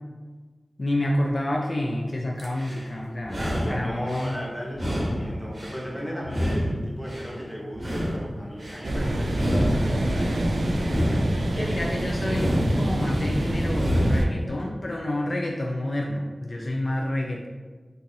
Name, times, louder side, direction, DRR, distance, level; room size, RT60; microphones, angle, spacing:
voice 1, 0.8-3.4 3.7-4.4 11.6-17.5, left 1 dB, 50° left, -1 dB, 0.3 m, -29 dB
sound 1, 2.4-2.9 3.2-4.4 4.7-5.9 6.2-7.3 7.7-8.8 9.3-10.4 10.8-11.9 12.3-13.3 13.7-14.4, equal, 40° right, 0.9 m, -28 dB
voice 2, 3.6-10.4 11.1-11.9, equal, 5° left, -4 dB, 0.9 m, -35 dB
sound 2, 8.8-14.2, right 1 dB, 90° right, 0.3 m, -26 dB
2.6 x 2.4 x 3.8 m, 1.4 s
wide cardioid pair, 60°, 0 cm